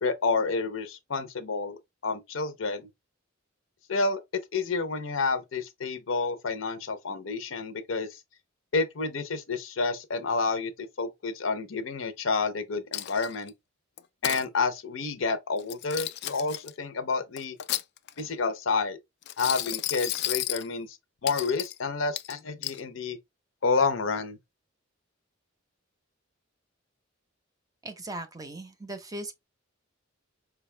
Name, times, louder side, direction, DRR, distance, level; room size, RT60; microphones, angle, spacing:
voice 1, 0.0-2.9 3.9-4.2 4.5-8.2 8.7-13.5 14.2-17.6 18.2-19.0 19.4-21.0 21.2-23.2 23.6-24.4, left 4 dB, 75° left, 0.7 m, -29 dB
Coin (dropping), 12.9-13.5 14.0-14.4 15.6-16.7 17.4-18.3 19.2-20.7 21.3-21.8 22.2-22.8, left 13 dB, 55° left, 0.3 m, -32 dB
voice 2, 27.8-29.3, right 2 dB, 20° right, 0.6 m, -38 dB
5.0 x 2.3 x 3.2 m
head